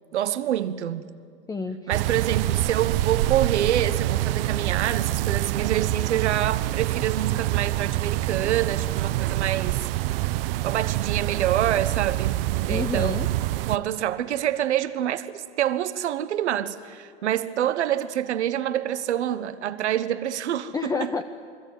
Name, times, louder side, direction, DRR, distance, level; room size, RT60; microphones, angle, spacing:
voice 1, 0.1-1.0 1.9-9.8 10.6-13.2 13.7-21.1, right 11 dB, 80° right, 1.3 m, -26 dB
voice 2, 1.5-1.9 12.7-13.3 20.7-21.2, left 4 dB, 10° left, 0.9 m, -29 dB
sound 1, 1.9-13.8, right 16 dB, 55° right, 0.9 m, -26 dB
29.5 x 21.5 x 9.1 m
hypercardioid pair, 115°, 34 cm